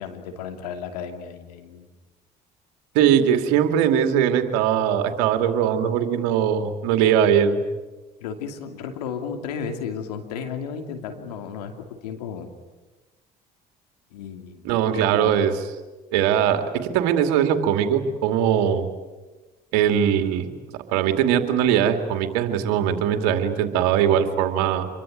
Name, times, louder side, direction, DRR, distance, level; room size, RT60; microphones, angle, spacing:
voice 1, 0.0-1.9 8.2-12.5 14.1-14.6 14.9-15.3, left 6 dB, 90° left, 5 dB, 2.7 m, -34 dB
voice 2, 2.9-7.6 14.6-15.5 16.1-18.9 19.7-20.6 20.9-24.9, right 9 dB, 80° right, 7 dB, 2.6 m, -21 dB
26.5 x 23.0 x 9.3 m, 1.2 s
hypercardioid pair, 60°, 20 cm